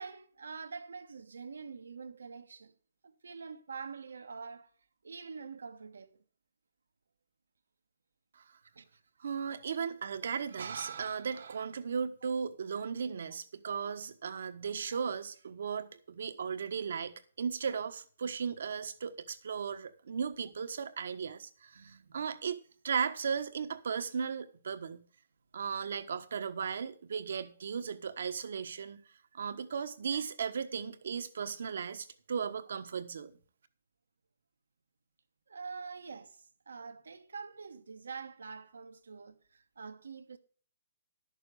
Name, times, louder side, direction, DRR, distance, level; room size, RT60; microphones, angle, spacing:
voice 1, 0.0-2.7 3.0-4.7 5.0-6.2 8.7-9.0 21.7-22.2 35.5-40.4, right 5 dB, 85° right, 1.3 m, -45 dB
voice 2, 9.2-22.6 22.8-25.0 25.5-29.0 29.3-33.3, right 6 dB, 65° right, 1.3 m, -36 dB
11.0 x 6.8 x 6.9 m
hypercardioid pair, 145°, 0 cm